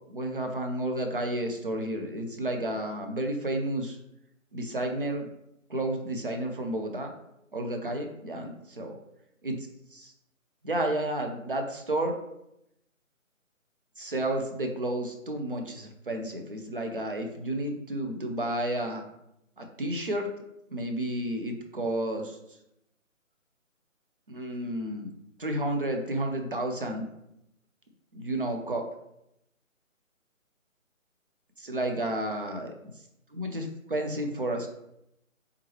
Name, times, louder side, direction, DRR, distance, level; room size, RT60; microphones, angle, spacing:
voice 1, 0.0-4.0 4.5-5.3 5.7-7.1 7.5-9.0 9.4-9.6 9.9-10.1 10.6-12.2 14.0-19.0 19.6-20.3 20.7-22.4 24.3-25.1 25.4-27.0 28.1-28.9 31.6-32.7 33.3-34.7, right 1 dB, 40° right, 4 dB, 0.5 m, -31 dB
3.6 x 3.0 x 3.0 m, 0.82 s
figure-of-eight pair, 165°, 41 cm